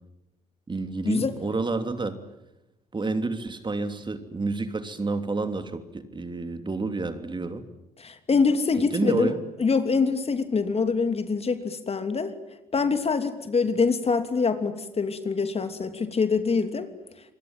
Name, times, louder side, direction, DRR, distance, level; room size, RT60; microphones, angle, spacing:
voice 1, 0.7-2.2 2.9-7.6 8.9-9.4, right 3 dB, 25° right, 8 dB, 3.0 m, -29 dB
voice 2, 8.0-9.3 9.6-12.3 12.7-16.9, left 4 dB, 35° left, 9 dB, 3.0 m, -24 dB
27.5 x 23.0 x 9.1 m, 0.93 s
hypercardioid pair, 55°, 19 cm